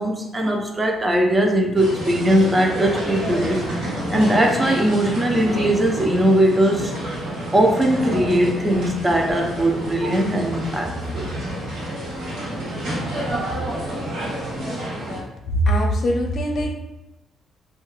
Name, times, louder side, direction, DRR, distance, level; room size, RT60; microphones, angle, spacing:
voice 1, 0.0-6.9 7.5-11.3 13.7-13.8 15.0-15.1, right 1 dB, 20° right, 2 dB, 0.5 m, -20 dB
sound 1, 1.8-15.2, right 1 dB, 85° right, 1.1 m, -29 dB
voice 2, 15.4-16.7, equal, 60° left, 0 dB, 0.6 m, -21 dB
2.6 x 2.2 x 3.0 m, 0.93 s
cardioid pair, 90°, 0 cm